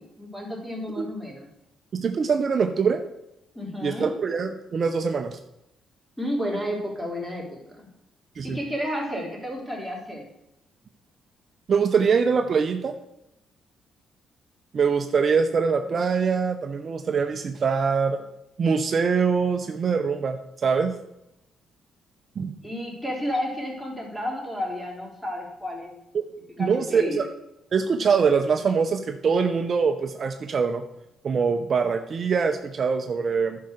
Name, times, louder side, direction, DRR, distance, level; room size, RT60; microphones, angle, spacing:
voice 1, 0.0-1.5 3.5-4.1 6.2-7.9 8.4-10.3 22.6-25.9 26.6-27.2, equal, 5° left, -2 dB, 3.9 m, -31 dB
voice 2, 1.9-3.0 3.8-5.4 8.4-8.6 11.7-12.9 14.7-18.2 18.6-20.9 22.4-22.6 26.1-26.2 26.6-27.3 27.7-30.8 31.2-33.6, right 5 dB, 50° right, 7 dB, 0.7 m, -23 dB
10.0 x 5.7 x 6.6 m, 0.86 s
cardioid pair, 90°, 0 cm